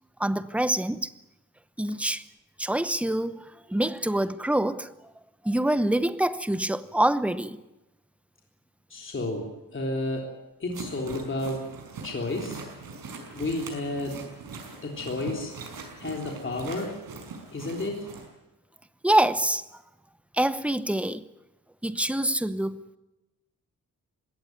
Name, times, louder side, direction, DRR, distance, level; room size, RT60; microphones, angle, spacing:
voice 1, 0.2-1.1 1.8-2.2 2.6-4.9 5.4-7.6 19.0-19.6 20.3-21.3 21.8-22.8, right 1 dB, 5° right, 0.8 m, -25 dB
voice 2, 8.9-11.7 12.0-12.6 13.3-14.2 14.8-15.6 16.0-17.0 17.5-18.2, left 2 dB, 35° left, 3.5 m, -32 dB
sound 1, 10.7-18.3, right 4 dB, 85° right, 5.6 m, -42 dB
20.5 x 17.0 x 9.4 m
wide cardioid pair, 140°, 34 cm